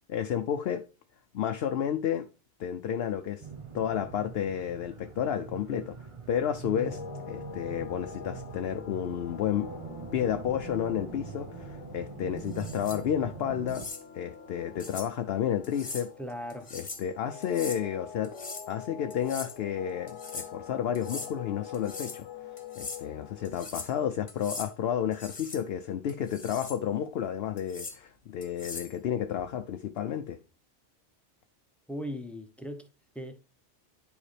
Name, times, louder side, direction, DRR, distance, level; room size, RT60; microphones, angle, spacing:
voice 1, 0.1-0.8 1.3-2.3 2.6-3.5 3.7-7.0 7.3-9.7 10.1-13.9 14.1-16.1 16.7-18.3 18.7-22.3 22.8-30.4, left 9 dB, 65° left, 0.8 m, -31 dB
sound 1, 3.4-13.9, right 5 dB, 30° right, 0.7 m, -43 dB
sound 2, 6.9-23.5, left 7 dB, 85° left, 1.2 m, -46 dB
sound 3, 12.5-13.0 13.7-14.0 14.8-15.1 15.6-16.1 16.5-17.1 17.4-17.8 18.2-18.7 19.1-19.6 20.1-20.5 20.9-21.3 21.7-22.2 22.6-23.0 23.4-23.9 24.3-24.7 25.1-25.6 26.1-26.8 27.6-28.0 28.4-28.9, left 3 dB, 35° left, 1.2 m, -41 dB
voice 2, 16.2-16.7 31.9-32.9 33.1-33.5, equal, ahead, 0.7 m, -38 dB
9.9 x 5.0 x 3.3 m
omnidirectional pair, 1.2 m